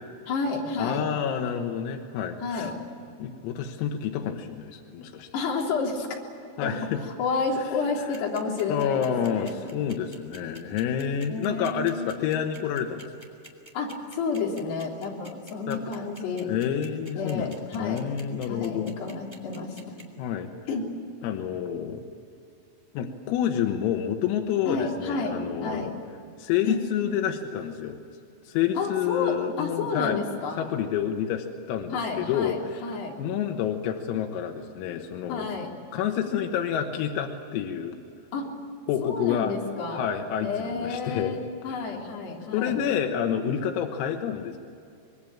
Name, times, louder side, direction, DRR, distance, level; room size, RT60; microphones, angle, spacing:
voice 1, 0.3-1.0 2.4-2.7 5.3-6.1 6.6-6.7 7.1-9.6 11.3-12.2 13.7-16.5 17.2-18.1 18.5-20.0 20.7-20.9 24.7-25.4 25.6-25.9 26.7-26.8 28.8-30.6 31.9-33.1 35.3-35.7 38.3-38.5 39.0-40.0 40.4-42.8, left 4 dB, 55° left, -1 dB, 5.3 m, -30 dB
voice 2, 0.8-2.7 3.2-5.3 6.6-7.0 8.7-13.1 15.7-15.8 16.5-19.0 20.2-20.5 21.2-22.0 22.9-25.9 26.4-28.0 28.5-30.2 30.6-35.5 35.9-38.0 38.9-39.5 39.9-41.4 41.7-41.9 42.5-44.6, left 9 dB, 90° left, 4 dB, 4.1 m, -28 dB
sound 1, 8.1-20.0, right 1 dB, 5° right, 2.2 m, -47 dB
26.0 x 22.0 x 8.7 m, 2.5 s
omnidirectional pair, 5.9 m